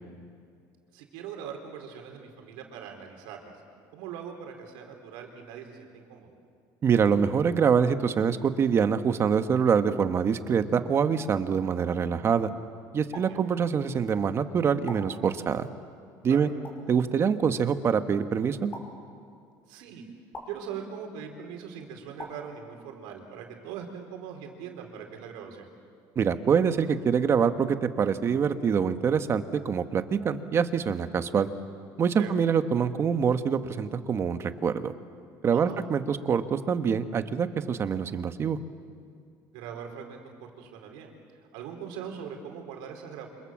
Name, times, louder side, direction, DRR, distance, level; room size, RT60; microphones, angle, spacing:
voice 1, 0.9-3.5 3.9-6.3 13.1-13.4 16.3-16.4 19.7-20.1 20.5-25.7 32.2-32.3 35.5-35.8 39.5-41.1 41.5-43.3, right 7 dB, 85° right, 3 dB, 4.3 m, -41 dB
voice 2, 6.8-12.5 12.9-15.7 16.2-16.5 16.9-18.7 26.2-31.5 32.0-34.9 35.4-38.6, right 6 dB, 30° right, 9 dB, 1.3 m, -25 dB
sound 1, 13.1-13.3 14.8-15.0 16.6-16.8 18.7-18.8 20.3-20.5 22.2-22.3, left 2 dB, 25° left, 5.5 m, -40 dB
28.5 x 26.5 x 7.5 m, 2.3 s
cardioid pair, 140°, 8 cm